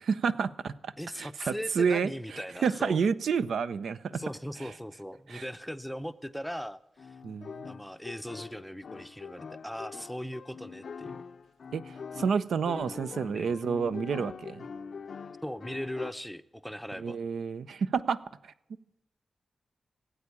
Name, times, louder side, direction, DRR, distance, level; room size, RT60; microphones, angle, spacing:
voice 1, 0.1-4.1 5.3-5.5 7.2-7.7 11.7-14.6 17.0-18.2 18.4-18.5, right 6 dB, 90° right, 14 dB, 0.6 m, -30 dB
voice 2, 1.0-3.0 4.1-7.2 7.6-11.1 13.3-13.6 15.4-17.2, equal, ahead, 12 dB, 0.6 m, -39 dB
sound 1, 4.7-4.9 7.0-16.1, left 5 dB, 60° left, 0.5 m, -43 dB
18.0 x 8.6 x 8.4 m, 0.84 s
wide cardioid pair, 130°, 0 cm